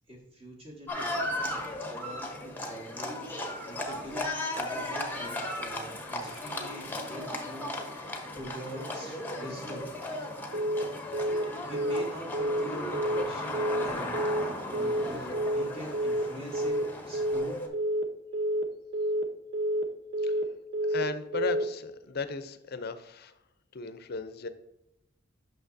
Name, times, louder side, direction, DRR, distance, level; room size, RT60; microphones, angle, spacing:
voice 1, 0.1-7.7 8.1-9.9 11.2-11.3 11.6-14.4 14.7-16.8 17.1-17.6, equal, 30° right, -3 dB, 1.7 m, -44 dB
Livestock farm animals working animals, 0.9-17.7, left 1 dB, 10° left, 0.9 m, -36 dB
Telephone, 10.5-10.8 11.1-11.4 11.7-12.0 12.3-12.6 12.9-13.2 13.5-13.8 14.1-14.4 14.7-15.0 15.3-15.6 15.9-16.2 16.5-16.8 17.1-17.4 17.7-18.0 18.3-18.6 18.9-19.2 19.5-19.8 20.1-20.4 20.7-21.0 21.3-21.6, equal, 70° right, 0.8 m, -28 dB
voice 2, 20.8-23.3 23.7-24.5, left 4 dB, 55° left, 11 dB, 0.6 m, -36 dB
8.9 x 6.2 x 2.6 m, 0.91 s
head